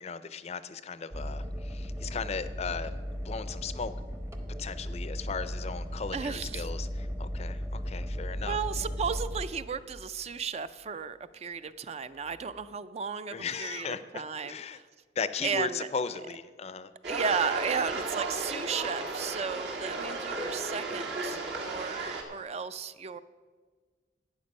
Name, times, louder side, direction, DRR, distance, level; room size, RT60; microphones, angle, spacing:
voice 1, 0.0-2.9 3.2-3.9 4.6-6.9 7.2-8.6 13.3-14.8 15.2-16.9, left 5 dB, 35° left, 14 dB, 0.4 m, -36 dB
sound 1, 1.1-10.2 12.3-12.6, equal, 15° right, 0.7 m, -36 dB
voice 2, 6.1-6.7 8.4-14.9 15.4-15.9 17.1-23.2, right 6 dB, 35° right, 13 dB, 0.3 m, -34 dB
sound 2, 17.0-22.2, right 3 dB, 70° right, 1.7 m, -34 dB
12.0 x 8.7 x 5.4 m, 1.5 s
head